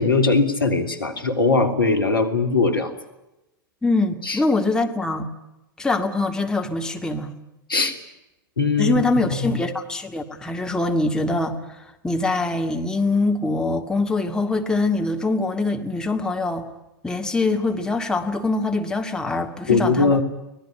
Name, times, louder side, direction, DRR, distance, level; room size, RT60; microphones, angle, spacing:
voice 1, 0.0-2.9 4.2-4.4 7.7-8.0 8.6-9.0 9.3-9.5 19.7-20.2, left 3 dB, 80° left, 6 dB, 3.0 m, -20 dB
voice 2, 3.8-5.3 5.8-7.3 8.8-16.7 17.0-20.2, left 2 dB, 5° left, 4 dB, 2.0 m, -23 dB
25.0 x 18.5 x 9.9 m, 0.95 s
figure-of-eight pair, 95°, 12 cm